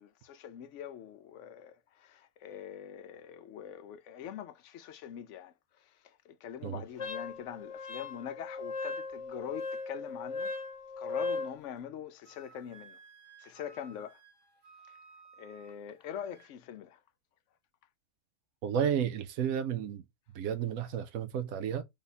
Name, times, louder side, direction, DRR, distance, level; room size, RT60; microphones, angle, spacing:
voice 1, 0.0-10.5 11.0-13.0 13.4-14.2 14.9-15.0 15.4-17.0, left 9 dB, 65° left, 0.8 m, -44 dB
Wind instrument woodwind instrument, 7.0-11.6, left 3 dB, 40° left, 0.5 m, -38 dB
Wind instrument woodwind instrument 2, 12.2-16.5, right 5 dB, 15° right, 1.2 m, -57 dB
voice 2, 18.6-20.0 20.3-21.8, right 8 dB, 80° right, 1.1 m, -32 dB
3.5 x 3.4 x 4.1 m
omnidirectional pair, 1.5 m